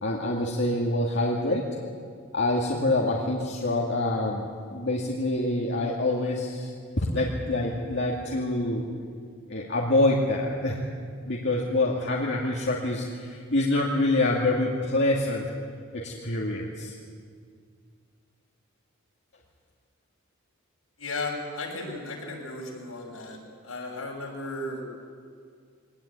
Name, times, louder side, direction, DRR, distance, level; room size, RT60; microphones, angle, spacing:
voice 1, 0.0-1.7 2.3-8.8 9.5-10.8 11.2-15.5 15.9-17.0, left 2 dB, 55° left, -3 dB, 2.4 m, -26 dB
voice 2, 21.0-23.4 23.6-24.8, left 2 dB, 80° left, -1 dB, 6.4 m, -35 dB
22.5 x 19.0 x 9.6 m, 2.1 s
head